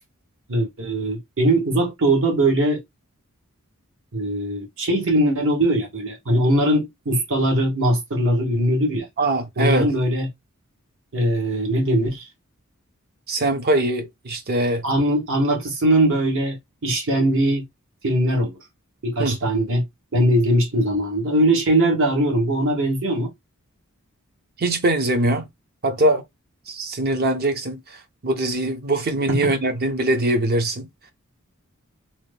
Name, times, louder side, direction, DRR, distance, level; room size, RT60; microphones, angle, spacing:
voice 1, 0.5-2.8 4.1-9.1 9.6-10.3 11.1-12.3 14.8-16.6 16.8-17.6 18.0-18.6 19.0-19.8 20.1-23.3 29.3-29.5, right 1 dB, 65° right, 1.2 m, -20 dB
voice 2, 9.2-9.9 13.3-14.8 19.2-19.4 24.6-25.5 25.8-26.2 26.7-30.9, right 1 dB, 50° right, 0.7 m, -22 dB
2.9 x 2.2 x 3.3 m
head